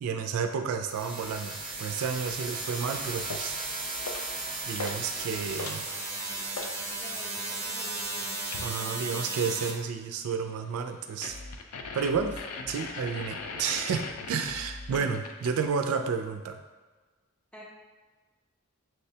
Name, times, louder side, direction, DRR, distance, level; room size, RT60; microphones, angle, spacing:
voice 1, 0.0-3.6 4.7-5.9 8.6-11.4 11.9-16.6, right 6 dB, 80° right, 6 dB, 0.3 m, -31 dB
sound 1, 0.9-9.7, right 2 dB, 25° right, 0.9 m, -35 dB
sound 2, 3.3-3.6 4.0-4.4 4.8-5.1 5.4-6.8 8.5-8.8 11.2-15.7, left 4 dB, 85° left, 0.4 m, -39 dB
voice 2, 6.9-8.4 14.9-15.1 17.5-17.6, equal, 5° left, -5 dB, 0.6 m, -48 dB
6.3 x 2.1 x 2.7 m, 1.3 s
head